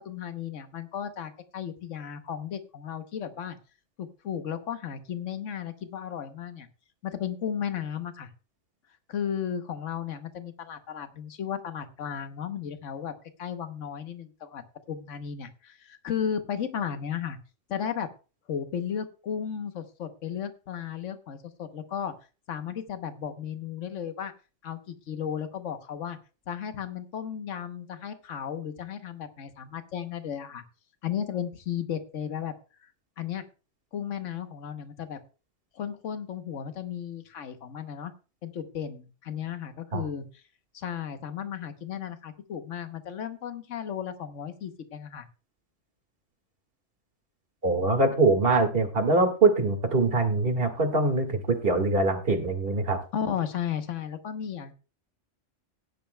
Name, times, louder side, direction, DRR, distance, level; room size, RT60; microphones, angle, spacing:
voice 1, 0.0-3.6 4.0-6.7 7.0-8.3 9.1-13.1 13.4-14.6 14.9-17.4 17.7-18.1 18.5-22.1 22.5-24.3 24.6-26.2 26.5-30.6 31.0-32.5 32.8-32.9 33.2-33.4 33.9-35.2 35.7-38.1 38.4-40.4 40.7-45.3 53.1-54.7, left 8 dB, 85° left, 9 dB, 1.3 m, -34 dB
voice 2, 47.6-53.0, right 3 dB, 50° right, 5 dB, 2.0 m, -23 dB
17.0 x 10.5 x 2.2 m, 0.33 s
omnidirectional pair, 1.3 m